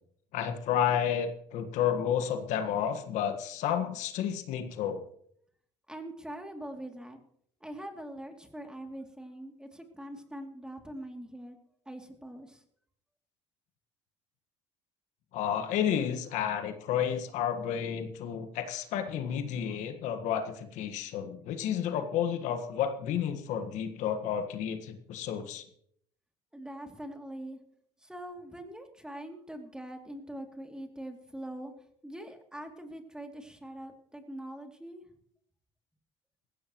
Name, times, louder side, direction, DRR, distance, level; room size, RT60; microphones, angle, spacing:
voice 1, 0.3-5.0 15.3-25.6, left 9 dB, 70° left, 7 dB, 1.6 m, -31 dB
voice 2, 5.9-7.2 7.6-11.6 11.9-12.6 26.5-27.6 28.0-31.7 32.0-35.0, right 1 dB, 5° right, 4 dB, 2.8 m, -43 dB
19.5 x 16.0 x 3.1 m, 0.66 s
supercardioid pair, 75°, 13 cm